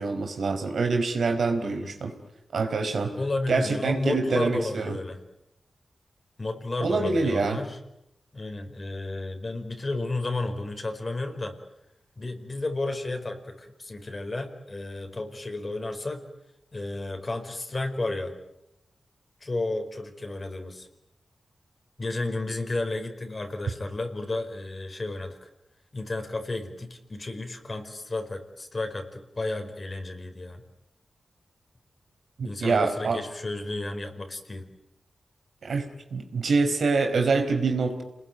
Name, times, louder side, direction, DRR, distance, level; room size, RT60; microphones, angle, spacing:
voice 1, 0.0-2.1 2.5-3.1 3.5-4.9 6.8-7.6 32.4-33.2 35.6-35.8 36.1-38.0, right 4 dB, 80° right, 5 dB, 4.6 m, -25 dB
voice 2, 1.5-2.0 3.1-5.2 6.4-7.8 8.3-11.6 12.2-16.2 16.7-18.4 19.4-20.9 22.0-25.5 25.9-30.6 32.4-34.6, left 2 dB, 40° left, 6 dB, 4.9 m, -32 dB
29.0 x 20.5 x 9.4 m, 0.84 s
cardioid pair, 65°, 0 cm